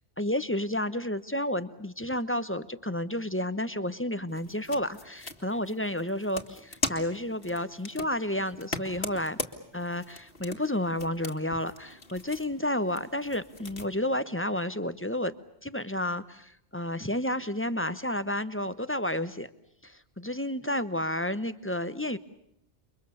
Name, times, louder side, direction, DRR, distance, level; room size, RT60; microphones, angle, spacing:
voice 1, 0.2-9.4 9.7-15.3 15.6-19.5 19.8-22.2, left 1 dB, 10° left, 13 dB, 0.9 m, -31 dB
sound 1, 4.3-13.9, left 3 dB, 55° left, 2.2 m, -40 dB
29.0 x 24.0 x 7.0 m, 0.76 s
omnidirectional pair, 1.2 m